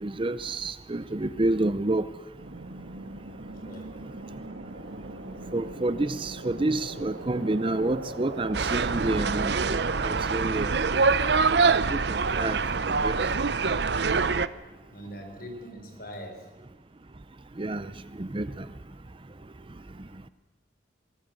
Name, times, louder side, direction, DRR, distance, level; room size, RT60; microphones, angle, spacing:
voice 1, 0.0-2.0 5.5-10.8 11.5-12.6 12.9-13.4 17.6-17.9 18.2-18.7, right 2 dB, 30° right, 14 dB, 0.6 m, -29 dB
sound 1, 2.4-12.9, right 2 dB, 85° right, 1.8 m, -42 dB
sound 2, 8.5-14.5, right 4 dB, 65° right, 0.7 m, -25 dB
voice 2, 14.9-16.5, equal, 55° left, 4 dB, 4.3 m, -42 dB
21.0 x 18.0 x 7.7 m, 1.2 s
head